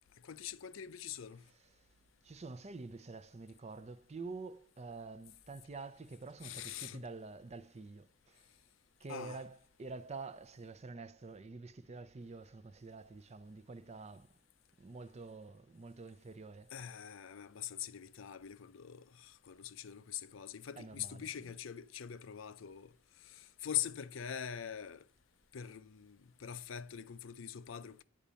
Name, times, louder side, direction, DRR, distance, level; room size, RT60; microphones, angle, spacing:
voice 1, 0.2-1.4 6.4-7.0 9.1-9.4 16.7-22.9 23.2-25.0 25.5-28.0, left 9 dB, 85° left, 0.5 m, -43 dB
voice 2, 1.5-1.9 2.2-8.5 9.0-14.4 14.8-16.7 20.8-21.5, right 3 dB, 35° right, 0.6 m, -48 dB
8.6 x 5.1 x 6.7 m
head